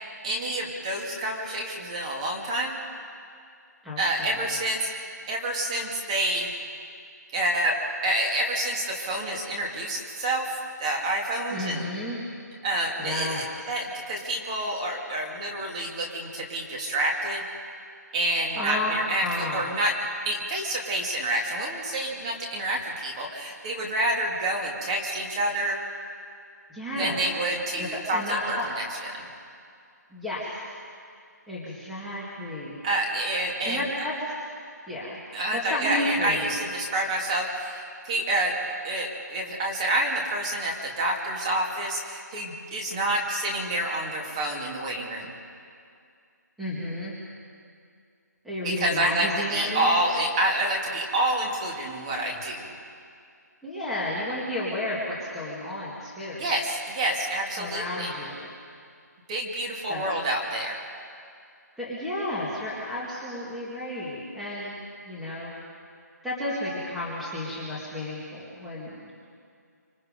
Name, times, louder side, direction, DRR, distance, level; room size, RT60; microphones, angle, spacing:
voice 1, 0.2-2.7 4.0-4.9 5.3-6.5 7.3-7.7 8.0-11.9 12.6-17.4 18.1-19.9 20.2-25.8 26.9-28.8 29.1-29.2 32.8-33.8 35.3-38.5 38.8-45.3 48.6-52.7 56.4-58.1 59.3-60.8, right 1 dB, 20° right, -1 dB, 2.5 m, -28 dB
voice 2, 3.8-4.4 11.5-12.2 13.0-13.5 18.6-19.0 19.2-19.6 26.7-27.2 27.8-28.7 30.1-30.6 31.5-32.8 33.7-34.1 34.9-35.2 35.5-36.5 46.6-47.1 48.4-49.9 53.6-56.4 57.6-58.5 59.9-60.2 61.8-64.7 65.1-65.5 66.2-69.1, left 1 dB, ahead, -8 dB, 2.0 m, -32 dB
25.5 x 25.5 x 5.3 m, 2.3 s
hypercardioid pair, 170°, 10 cm